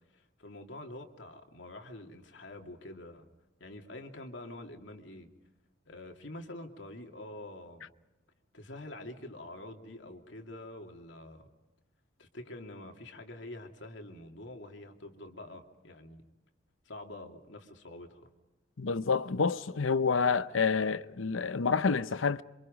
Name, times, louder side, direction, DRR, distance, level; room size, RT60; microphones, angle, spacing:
voice 1, 0.1-3.3 3.6-5.3 5.9-7.9 8.5-11.5 12.2-16.2 16.8-18.3, left 1 dB, 75° left, 2.6 m, -46 dB
voice 2, 18.8-22.4, left 5 dB, 90° left, 0.7 m, -28 dB
28.0 x 26.0 x 5.3 m
head